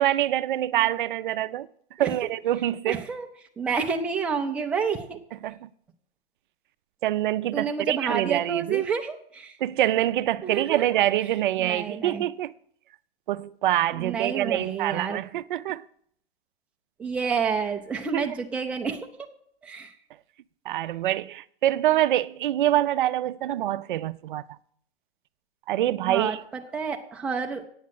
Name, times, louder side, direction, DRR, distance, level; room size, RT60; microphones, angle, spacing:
voice 1, 0.0-1.7 2.0-3.0 5.4-5.7 7.0-8.8 9.6-12.5 13.3-15.8 18.1-18.3 20.7-24.4 25.7-26.4, right 13 dB, 55° right, 0.5 m, -25 dB
voice 2, 2.0-2.3 2.9-3.3 3.6-5.2 7.5-9.6 10.4-11.0 11.6-12.2 13.9-15.2 17.0-19.1 19.6-19.9 26.0-27.7, right 6 dB, 5° right, 0.4 m, -29 dB
8.7 x 7.3 x 7.4 m
hypercardioid pair, 145°, 30 cm